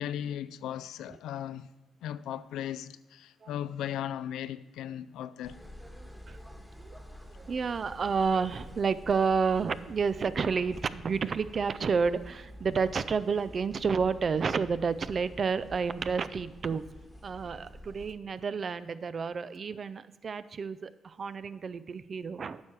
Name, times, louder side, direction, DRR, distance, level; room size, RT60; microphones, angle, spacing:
voice 1, 0.0-1.7 2.0-5.6, left 10 dB, 85° left, 0.3 m, -37 dB
sound 1, 5.4-18.1, equal, ahead, 1.4 m, -48 dB
voice 2, 7.3-16.8 17.2-22.6, right 5 dB, 50° right, 0.4 m, -30 dB
9.6 x 5.9 x 4.7 m
supercardioid pair, 60°, 0 cm